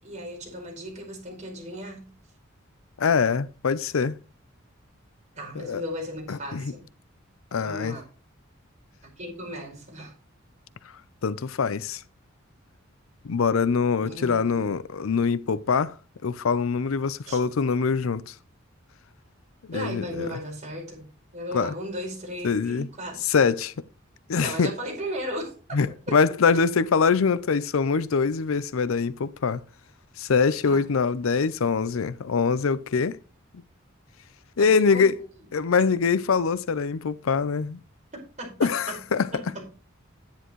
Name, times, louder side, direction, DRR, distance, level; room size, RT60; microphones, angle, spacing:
voice 1, 0.0-2.1 5.3-6.8 7.6-8.0 9.0-10.1 14.0-14.8 17.3-17.4 19.7-21.0 21.3-23.4 24.4-25.5 26.1-26.2 30.6-30.8 34.6-35.0 38.1-39.0 39.3-39.6, equal, 35° right, 5.0 m, -36 dB
voice 2, 3.0-4.2 5.6-5.8 6.3-6.7 7.5-8.0 11.2-12.0 13.2-16.0 16.2-18.3 19.7-20.3 21.5-21.7 22.4-22.9 23.2-23.7 24.3-24.7 25.7-29.6 30.2-33.2 34.6-35.2 35.5-37.8 38.6-39.3, left 5 dB, 80° left, 0.5 m, -24 dB
10.0 x 10.0 x 3.1 m
head